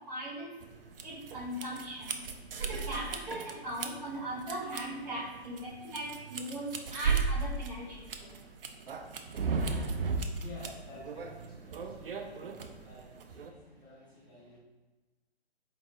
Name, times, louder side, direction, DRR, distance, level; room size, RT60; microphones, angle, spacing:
voice 1, 0.1-0.5 1.0-2.2 2.6-8.3, right 1 dB, 40° right, -5 dB, 1.2 m, -39 dB
sound 1, 0.6-13.5, right 5 dB, 60° right, 0.5 m, -36 dB
voice 2, 10.4-14.6, left 1 dB, 15° left, -8 dB, 1.0 m, -51 dB
4.7 x 2.5 x 3.3 m, 1.2 s
figure-of-eight pair, 125°, 32 cm